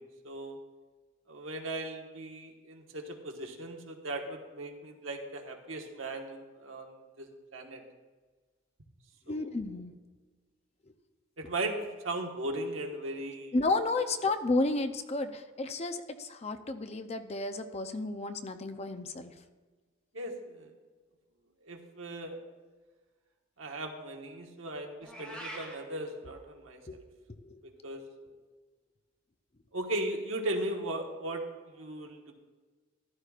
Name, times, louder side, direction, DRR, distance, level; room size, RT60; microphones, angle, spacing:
voice 1, 0.2-0.6 1.3-7.8 9.3-9.4 11.4-13.5 20.1-20.7 21.6-22.4 23.6-26.8 27.6-28.0 29.7-31.4 31.8-32.3, right 1 dB, 75° right, 2 dB, 1.4 m, -37 dB
voice 2, 9.3-9.9 13.5-19.3 26.9-27.0 27.4-27.6, left 2 dB, 30° left, 8 dB, 0.6 m, -32 dB
Meow, 25.0-25.8, equal, 5° left, 2.1 m, -43 dB
14.0 x 12.5 x 2.5 m, 1.3 s
head